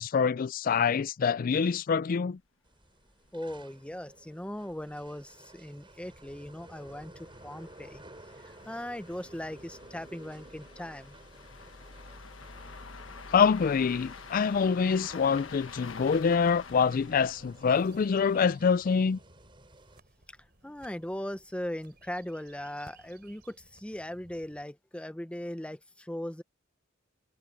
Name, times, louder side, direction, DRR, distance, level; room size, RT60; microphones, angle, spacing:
voice 1, 0.0-2.4 13.3-19.2, left 6 dB, 45° left, 0.4 m, -25 dB
sound 1, 1.9-2.0 2.3-2.4 2.8-2.9 3.2-3.3 4.0-18.4, left 5 dB, 90° left, 1.4 m, -49 dB
sound 2, 2.6-20.0, right 1 dB, 25° right, 7.6 m, -54 dB
voice 2, 3.3-8.0 8.4-11.2 20.6-26.4, left 1 dB, 5° left, 0.8 m, -39 dB
sound 3, 14.0-24.6, right 3 dB, 55° right, 3.9 m, -61 dB
head